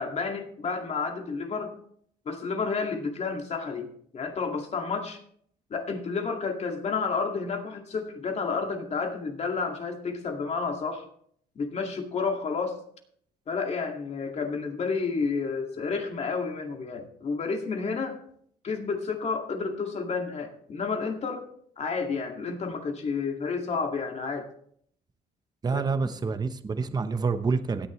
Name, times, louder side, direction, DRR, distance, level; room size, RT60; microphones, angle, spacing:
voice 1, 0.0-1.7 2.3-5.2 5.7-11.1 11.6-12.8 13.5-18.2 18.6-21.4 21.8-24.5 25.7-25.8, left 4 dB, 40° left, 3 dB, 2.2 m, -30 dB
voice 2, 25.6-27.9, right 4 dB, 25° right, 9 dB, 0.9 m, -27 dB
17.0 x 10.0 x 3.2 m, 0.63 s
cardioid pair, 110°, 17 cm